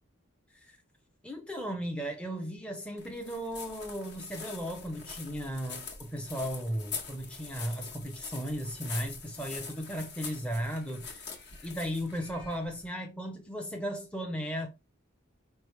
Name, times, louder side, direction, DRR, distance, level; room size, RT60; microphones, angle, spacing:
voice 1, 1.2-14.7, equal, 5° left, 0.6 m, -36 dB
sound 1, 3.0-12.9, left 5 dB, 55° left, 1.2 m, -44 dB
4.9 x 3.3 x 3.1 m
head